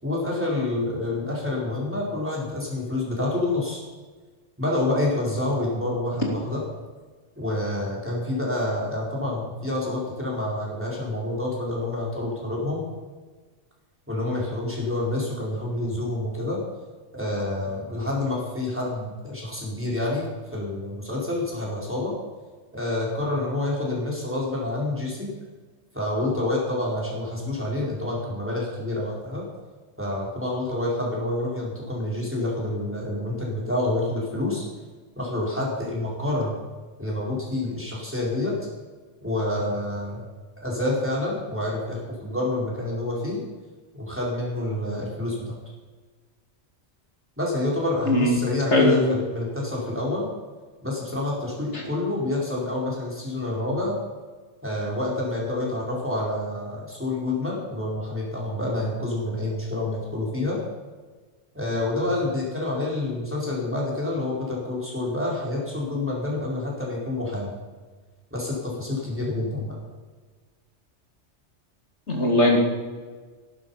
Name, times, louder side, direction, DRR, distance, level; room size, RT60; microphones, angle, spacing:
voice 1, 0.0-3.8 4.6-6.6 7.4-12.8 14.1-16.6 17.1-22.1 22.7-25.3 25.9-29.4 30.0-34.6 35.2-36.6 37.0-38.5 39.2-40.2 40.6-43.4 43.9-45.3 47.4-50.3 50.8-54.0 54.6-60.6 61.5-67.5 68.3-69.8, left 2 dB, 10° right, -5 dB, 4.5 m, -28 dB
voice 2, 48.1-48.4 48.7-49.0 51.7-51.8 72.1-72.6, left 1 dB, 70° left, 1 dB, 2.7 m, -19 dB
15.5 x 11.5 x 5.7 m, 1.4 s
omnidirectional pair, 1.2 m